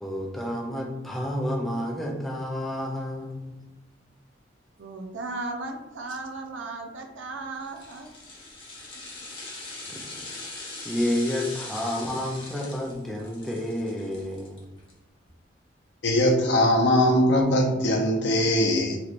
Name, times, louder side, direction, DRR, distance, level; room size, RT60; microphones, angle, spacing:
voice 1, 0.0-3.6 9.9-10.2 10.8-14.6, left 1 dB, ahead, -1 dB, 0.5 m, -30 dB
voice 2, 4.8-8.1 9.9-10.0, right 3 dB, 80° right, 3 dB, 0.5 m, -36 dB
sound 1, 7.6-14.9 15.3-15.4, left 2 dB, 30° left, 0.8 m, -41 dB
voice 3, 16.0-19.0, left 1 dB, 65° left, 1 dB, 0.6 m, -21 dB
3.2 x 2.9 x 2.5 m, 0.98 s
head